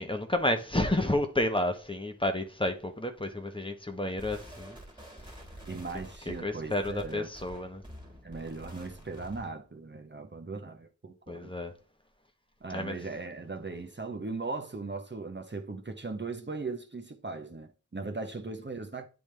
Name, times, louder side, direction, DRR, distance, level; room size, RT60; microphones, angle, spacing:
voice 1, 0.0-4.8 6.3-7.8 11.3-11.7 12.7-13.0, left 1 dB, 15° left, 0.9 m, -31 dB
sound 1, 4.2-9.6, equal, 15° right, 1.7 m, -48 dB
voice 2, 5.7-7.3 8.2-11.5 12.6-19.0, right 3 dB, 35° right, 0.8 m, -38 dB
9.0 x 3.4 x 3.2 m
wide cardioid pair, 60°, 30 cm